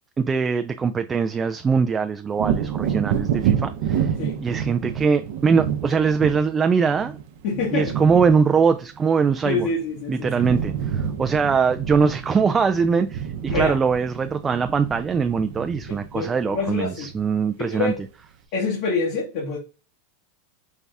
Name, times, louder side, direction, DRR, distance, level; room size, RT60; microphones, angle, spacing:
voice 1, 0.2-4.1 4.4-7.2 7.7-9.7 10.1-17.9, right 5 dB, 20° right, 0.3 m, -22 dB
Wind / Thunder, 2.3-9.9 10.2-17.4 17.9-18.0, right 8 dB, 65° right, 0.7 m, -29 dB
voice 2, 7.4-8.0 9.4-10.5 13.5-13.8 15.9-17.1 17.6-18.0 18.5-19.6, left 4 dB, 65° left, 1.7 m, -26 dB
5.3 x 2.3 x 3.4 m
supercardioid pair, 120°, 0 cm